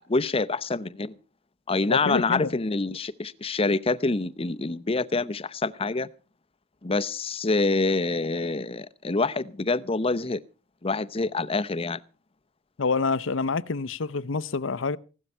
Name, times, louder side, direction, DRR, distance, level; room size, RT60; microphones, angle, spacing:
voice 1, 0.1-1.1 1.7-6.1 6.8-10.4 10.8-12.0, left 3 dB, 30° left, 0.7 m, -26 dB
voice 2, 1.9-2.5 12.8-15.0, left 4 dB, 80° left, 0.7 m, -27 dB
16.5 x 12.0 x 5.6 m
head